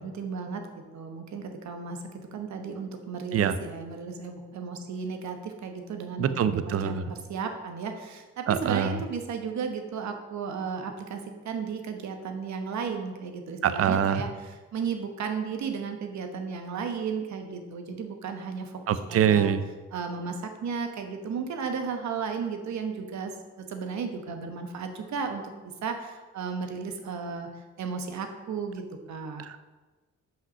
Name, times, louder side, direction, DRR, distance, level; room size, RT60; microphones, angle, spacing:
voice 1, 0.0-19.5 19.9-25.4 25.8-29.4, right 5 dB, 65° right, 5 dB, 1.2 m, -34 dB
voice 2, 6.2-7.0 8.5-9.0 13.6-14.2 18.9-19.6 29.4-29.7, right 8 dB, 50° right, 13 dB, 0.6 m, -24 dB
5.8 x 5.7 x 5.5 m, 1.3 s
cardioid pair, 90°, 30 cm